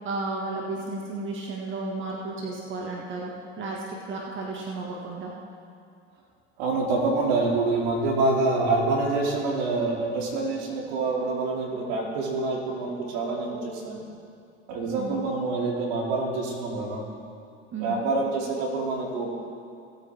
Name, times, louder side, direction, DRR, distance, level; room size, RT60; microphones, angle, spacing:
voice 1, 0.0-5.3 15.0-15.2 17.7-18.1, right 3 dB, 30° right, -3 dB, 2.0 m, -33 dB
voice 2, 6.6-14.0 14.7-17.0 17.8-19.3, right 3 dB, 65° right, -2 dB, 3.0 m, -26 dB
18.5 x 8.6 x 3.6 m, 2.4 s
hypercardioid pair, 85°, 37 cm